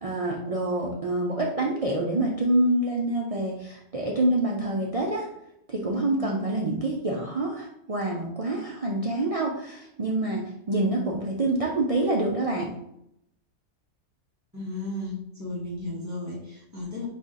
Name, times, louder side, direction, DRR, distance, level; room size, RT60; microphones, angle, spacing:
voice 1, 0.0-5.3 5.7-12.7, right 2 dB, 60° right, -2 dB, 0.3 m, -26 dB
voice 2, 14.5-17.1, left 2 dB, 15° right, -5 dB, 1.2 m, -34 dB
4.1 x 2.9 x 3.7 m, 0.80 s
omnidirectional pair, 1.3 m